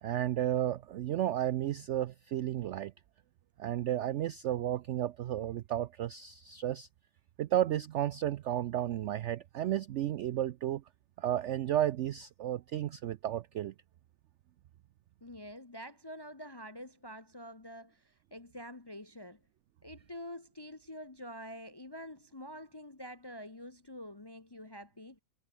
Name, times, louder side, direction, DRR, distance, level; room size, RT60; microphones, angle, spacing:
voice 1, 0.0-2.9 3.6-6.9 7.4-10.8 11.2-13.7, right 12 dB, 75° right, 0.6 m, -33 dB
voice 2, 15.2-19.4 19.8-25.2, equal, 25° left, 0.5 m, -47 dB
omnidirectional pair, 1.7 m